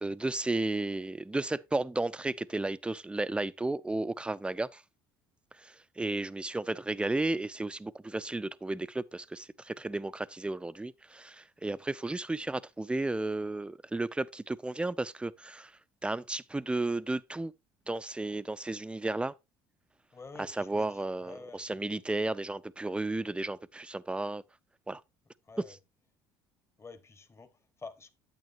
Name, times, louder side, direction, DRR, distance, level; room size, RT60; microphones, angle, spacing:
voice 1, 0.0-4.8 5.5-15.7 16.0-17.5 17.9-19.3 20.6-24.4 24.9-25.0, right 2 dB, 10° right, 0.5 m, -33 dB
voice 2, 20.1-22.1 25.4-25.8 26.8-28.1, left 4 dB, 25° left, 1.1 m, -49 dB
9.2 x 8.4 x 2.6 m
supercardioid pair, 85°, 11 cm